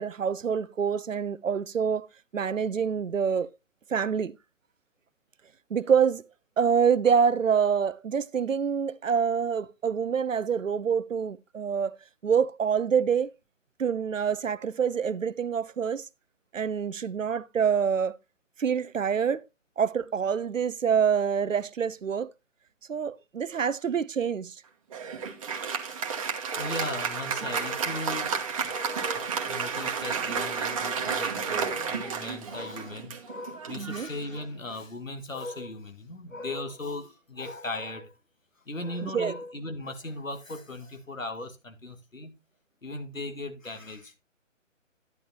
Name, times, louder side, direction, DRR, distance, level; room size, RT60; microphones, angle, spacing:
voice 1, 0.0-2.1 2.3-3.5 3.9-4.4 5.7-6.3 6.6-12.0 12.2-13.3 13.8-16.1 16.5-18.2 18.6-19.4 19.8-22.3 22.9-24.6 33.8-34.1 39.0-39.3, right 7 dB, 80° right, 0.7 m, -26 dB
Applause, 24.9-34.7, right 6 dB, 25° right, 1.1 m, -32 dB
voice 2, 26.5-38.2 38.7-42.4 42.8-44.2, left 2 dB, 85° left, 2.0 m, -37 dB
10.5 x 9.8 x 2.8 m
figure-of-eight pair, 145°, 38 cm